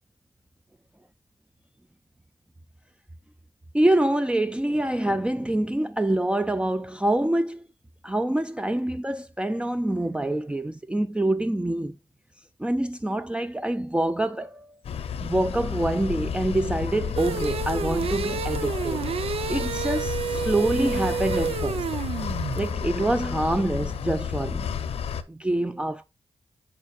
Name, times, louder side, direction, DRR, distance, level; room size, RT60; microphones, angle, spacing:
voice 1, 3.7-7.6 8.0-11.9 12.6-14.7 15.2-19.1 19.5-21.9 22.6-24.7 25.3-26.0, right 1 dB, 10° right, 0.5 m, -26 dB
sound 1, 14.8-25.2, left 7 dB, 85° left, 0.7 m, -31 dB
sound 2, 17.2-22.7, right 7 dB, 80° right, 0.5 m, -30 dB
7.5 x 6.8 x 2.4 m
cardioid pair, 55°, 10 cm